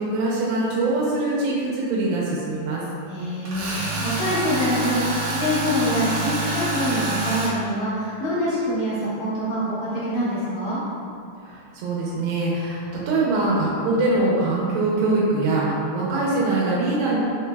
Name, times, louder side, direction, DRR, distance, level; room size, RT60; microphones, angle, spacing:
voice 1, 0.0-2.8 11.4-17.2, right 2 dB, 90° right, -6 dB, 2.4 m, -23 dB
voice 2, 3.1-10.8, equal, 70° left, -9 dB, 1.9 m, -25 dB
Tools, 3.5-7.5, right 2 dB, 70° right, 1.8 m, -27 dB
5.6 x 3.2 x 2.2 m, 2.5 s
omnidirectional pair, 4.1 m